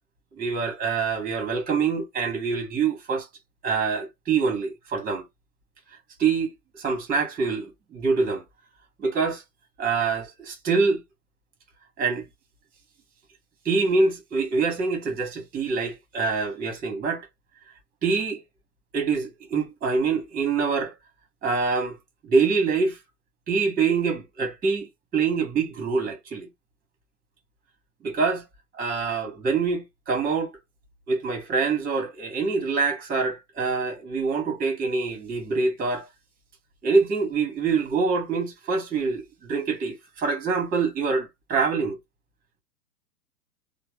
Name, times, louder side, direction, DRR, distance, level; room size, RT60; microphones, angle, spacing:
voice 1, 0.3-3.3 3.6-5.2 6.2-8.4 9.0-9.4 9.8-11.0 12.0-12.3 13.6-17.3 18.0-18.4 18.9-20.9 21.4-22.0 22.2-23.0 23.5-26.5 28.0-28.4 28.8-30.5 31.1-36.1 36.8-42.0, right 4 dB, 15° right, 1.4 m, -25 dB
4.0 x 2.3 x 3.5 m
figure-of-eight pair, 105°, 49 cm